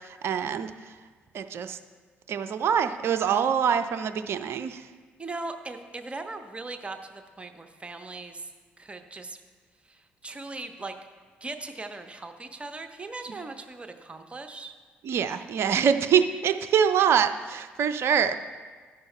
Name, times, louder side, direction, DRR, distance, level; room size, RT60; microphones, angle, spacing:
voice 1, 0.2-0.7 1.3-1.8 2.3-4.8 15.0-18.4, right 7 dB, 50° right, 10 dB, 0.4 m, -24 dB
voice 2, 5.2-8.5 8.8-9.4 9.9-10.9 11.4-14.7, right 3 dB, 20° right, 7 dB, 0.9 m, -39 dB
13.0 x 10.0 x 2.2 m, 1.5 s
figure-of-eight pair, 45°, 5 cm